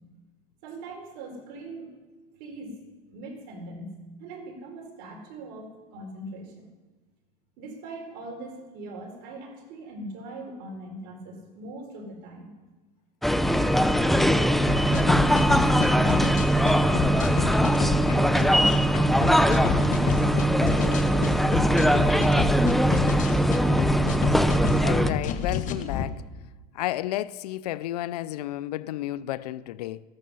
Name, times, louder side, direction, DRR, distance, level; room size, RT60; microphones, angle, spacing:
voice 1, 0.6-1.9 2.4-2.8 3.1-3.9 4.2-6.5 7.6-12.5 14.9-15.4 17.0-23.2, right 1 dB, 55° right, 4.5 m, -40 dB
sound 1, 13.2-25.1, equal, ahead, 0.5 m, -21 dB
sound 2, 14.7-26.1, left 8 dB, 40° left, 1.3 m, -29 dB
voice 2, 24.8-26.2 26.7-30.0, left 14 dB, 90° left, 0.5 m, -32 dB
13.5 x 13.0 x 5.5 m
supercardioid pair, 125°, 20 cm